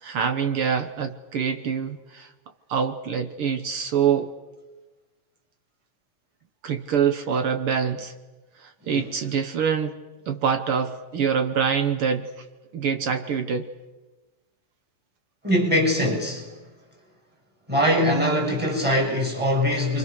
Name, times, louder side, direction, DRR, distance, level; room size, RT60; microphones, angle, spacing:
voice 1, 0.0-2.3 2.7-4.3 6.6-8.1 8.6-10.0 10.3-12.3 12.7-13.7, right 7 dB, 65° right, 1.3 m, -25 dB
voice 2, 15.4-16.5 17.7-20.0, equal, 5° right, 5.9 m, -22 dB
29.5 x 24.5 x 6.5 m
omnidirectional pair, 4.0 m